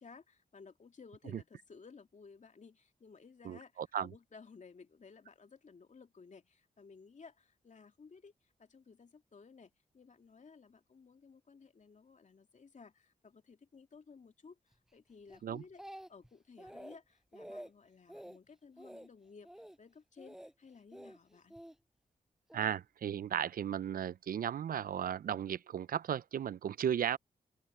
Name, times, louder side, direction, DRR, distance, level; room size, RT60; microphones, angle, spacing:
voice 1, 0.0-21.6, left 5 dB, 55° left, 2.7 m, -57 dB
voice 2, 3.4-4.1 15.4-15.6 22.5-27.2, right 9 dB, 70° right, 0.7 m, -35 dB
Speech, 15.3-16.3 16.6-17.0 17.3-17.7 18.1-18.4 18.8-19.1 19.4-19.8 20.2-20.5 20.9-21.7 22.5-22.8, right 1 dB, 5° right, 0.4 m, -49 dB
supercardioid pair, 45°, 15 cm